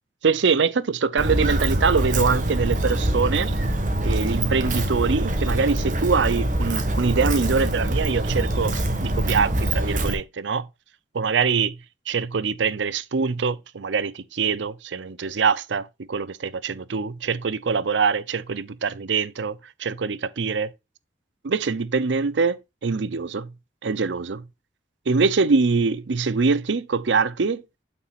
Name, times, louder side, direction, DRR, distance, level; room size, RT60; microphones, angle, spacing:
voice 1, 0.2-3.6 4.0-8.7 9.0-10.7 11.1-11.8 12.1-20.7 21.4-23.5 23.8-24.5 25.1-27.6, right 5 dB, 80° right, 0.6 m, -24 dB
Walk footsteps, 1.2-10.1, right 1 dB, 45° right, 1.5 m, -24 dB
8.7 x 7.0 x 2.4 m
head